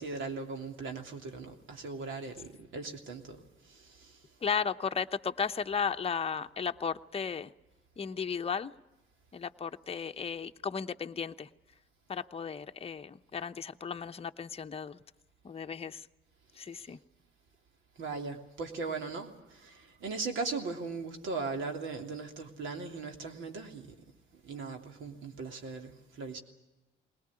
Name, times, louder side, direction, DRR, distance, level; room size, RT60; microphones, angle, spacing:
voice 1, 0.0-4.2 18.0-23.9 24.3-26.4, right 4 dB, 75° right, 4 dB, 3.0 m, -39 dB
voice 2, 4.4-7.5 8.0-8.7 9.3-11.5 12.1-15.0 15.4-16.1 16.6-17.0, left 6 dB, 30° left, 6 dB, 0.8 m, -35 dB
20.5 x 19.0 x 9.8 m, 1.0 s
cardioid pair, 90°, 20 cm